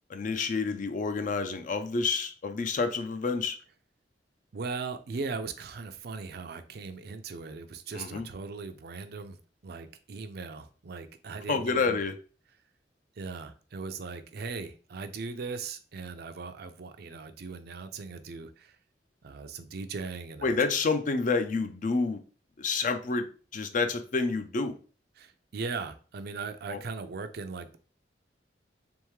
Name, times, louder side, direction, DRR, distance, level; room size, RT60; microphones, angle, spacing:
voice 1, 0.1-3.6 7.9-8.3 11.5-12.1 20.4-22.2 22.6-24.8 26.7-26.8, left 4 dB, 45° left, 0.5 m, -29 dB
voice 2, 4.5-9.4 9.6-12.0 13.2-18.8 19.2-20.5 25.2-27.8, right 4 dB, 60° right, 0.5 m, -39 dB
3.5 x 3.5 x 3.1 m
head